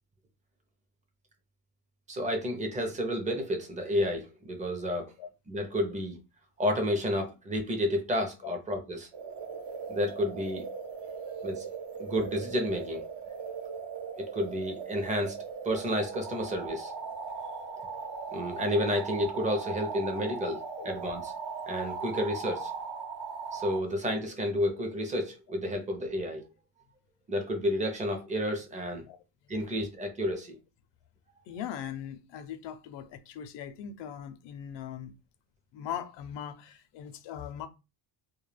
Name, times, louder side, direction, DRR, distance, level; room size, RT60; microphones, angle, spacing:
voice 1, 2.1-5.1 5.5-6.2 6.6-9.1 9.9-10.6 11.4-11.7 12.0-13.0 14.2-15.4 15.6-16.9 18.3-21.3 21.7-22.7 23.5-26.4 27.3-29.1 29.5-30.6, equal, 20° right, 0.5 m, -31 dB
sound 1, 9.1-23.8, right 5 dB, 65° right, 0.9 m, -39 dB
voice 2, 31.5-35.1 35.7-37.7, left 9 dB, 85° left, 0.5 m, -40 dB
2.2 x 2.1 x 3.2 m
cardioid pair, 160°, 42 cm